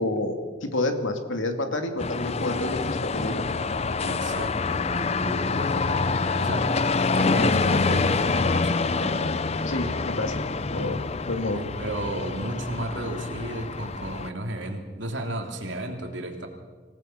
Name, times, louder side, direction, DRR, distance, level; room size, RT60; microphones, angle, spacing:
voice 1, 0.0-3.5 9.7-10.4 10.7-11.0 11.3-11.6, left 2 dB, 70° left, 6 dB, 2.3 m, -29 dB
sound 1, 2.0-14.3, left 4 dB, 30° left, 0.6 m, -26 dB
voice 2, 4.0-6.7 7.1-9.4 11.6-16.5, right 1 dB, 65° right, 2 dB, 3.1 m, -34 dB
26.5 x 17.5 x 6.1 m, 1.4 s
head